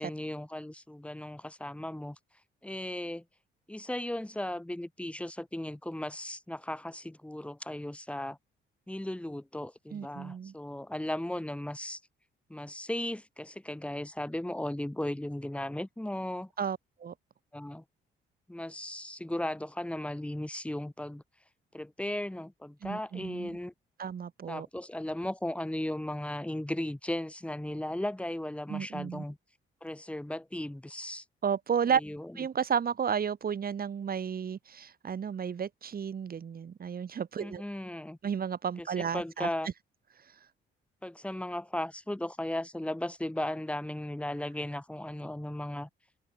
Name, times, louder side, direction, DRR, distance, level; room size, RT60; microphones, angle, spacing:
voice 1, 0.0-2.2 2.6-3.2 3.7-8.4 8.9-12.0 12.5-16.5 17.5-17.8 18.5-21.2 21.7-23.7 24.5-29.4 29.8-31.2 31.9-32.3 37.4-38.2 38.8-39.7 41.0-45.9, left 1 dB, 5° left, 3.8 m, -36 dB
voice 2, 9.9-10.5 16.6-17.1 22.8-23.6 24.0-24.7 28.7-29.2 31.4-32.0 32.4-37.6 38.2-39.5, right 7 dB, 50° right, 3.0 m, -32 dB
cardioid pair, 90°, 20 cm